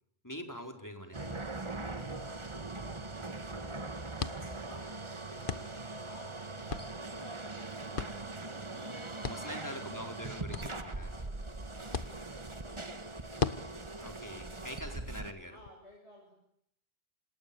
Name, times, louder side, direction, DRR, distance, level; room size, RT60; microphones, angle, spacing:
voice 1, 0.2-1.6 9.2-11.1 14.0-15.6, equal, 15° left, 4 dB, 4.1 m, -44 dB
sound 1, 1.1-15.3, right 2 dB, 30° right, 1.4 m, -41 dB
voice 2, 1.7-9.8 10.2-14.8 15.4-16.3, equal, 85° left, -2 dB, 7.8 m, -54 dB
sound 2, 4.2-15.7, left 5 dB, 55° left, 1.3 m, -43 dB
28.0 x 27.0 x 6.9 m, 0.75 s
omnidirectional pair, 1.1 m